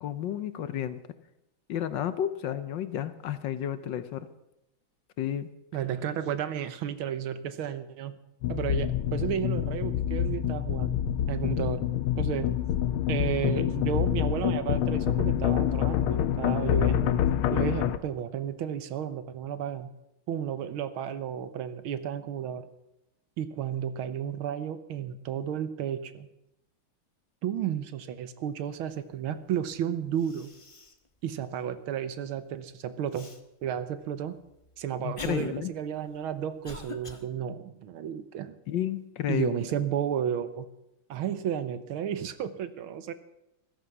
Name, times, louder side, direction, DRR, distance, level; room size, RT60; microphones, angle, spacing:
voice 1, 0.0-1.0 1.7-4.3 5.2-5.5 35.0-35.7 38.7-39.7, left 10 dB, 65° left, 13 dB, 1.4 m, -31 dB
voice 2, 5.7-8.2 8.5-11.8 12.2-12.5 13.1-17.2 17.5-19.9 20.3-22.7 23.4-26.3 27.4-30.5 31.2-33.3 33.6-34.3 34.8-38.6 39.3-40.7 41.1-43.1, right 9 dB, 80° right, 12 dB, 1.8 m, -32 dB
sound 1, 8.4-18.0, left 11 dB, 85° left, 1.7 m, -27 dB
Cough, 29.7-29.8 30.2-31.1 31.5-31.6 33.1-33.4 34.2-37.2, left 3 dB, 30° left, 0.6 m, -45 dB
15.0 x 13.0 x 5.9 m, 0.88 s
omnidirectional pair, 2.3 m